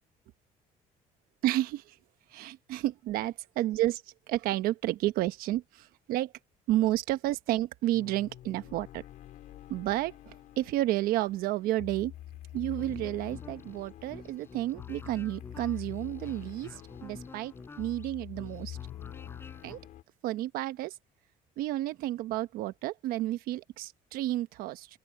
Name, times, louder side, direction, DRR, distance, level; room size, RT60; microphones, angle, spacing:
voice 1, 1.4-1.8 2.3-4.0 4.3-6.3 6.7-9.0 9.7-12.1 12.5-16.7 17.0-18.8 19.6-19.8 20.2-20.9 21.6-24.9, right 15 dB, 85° right, 1.1 m, -31 dB
sound 1, 7.9-20.0, left 13 dB, 60° left, 4.3 m, -46 dB
sound 2, 12.8-19.8, left 4 dB, 15° left, 5.8 m, -49 dB
open air
cardioid pair, 180°, 15 cm